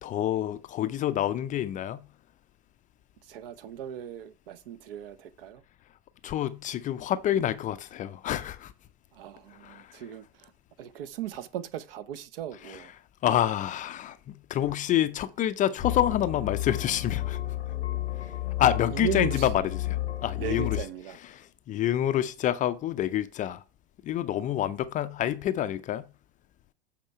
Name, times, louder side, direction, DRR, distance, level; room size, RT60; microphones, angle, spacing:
voice 1, 0.0-2.0 6.2-8.7 9.6-10.0 12.7-12.8 13.2-17.4 18.6-20.8 21.3-23.6 24.0-26.0, left 11 dB, 25° left, 0.4 m, -28 dB
voice 2, 3.2-5.6 9.1-10.5 10.8-12.9 18.9-19.5 20.4-21.2, right 9 dB, 65° right, 0.8 m, -37 dB
sound 1, 15.8-20.8, left 14 dB, 85° left, 0.7 m, -32 dB
7.7 x 4.3 x 4.7 m
hypercardioid pair, 90°, 31 cm